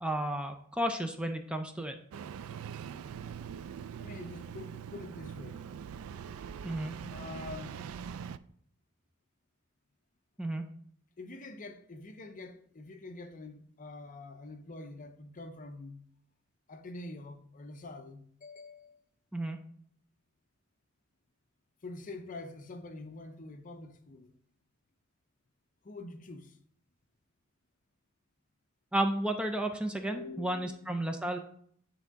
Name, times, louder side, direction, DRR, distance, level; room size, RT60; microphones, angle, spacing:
voice 1, 0.0-1.9 6.6-7.0 10.4-10.6 19.3-19.6 28.9-31.4, right 1 dB, 5° right, 0.5 m, -32 dB
Engine starting, 2.1-8.4, right 7 dB, 85° right, 0.3 m, -43 dB
voice 2, 4.0-5.6 7.1-7.8 11.2-16.0 16.7-19.0 21.8-24.3 25.8-26.6 30.0-30.7 31.1-31.2, left 2 dB, 40° left, 0.6 m, -45 dB
9.6 x 3.6 x 4.0 m
head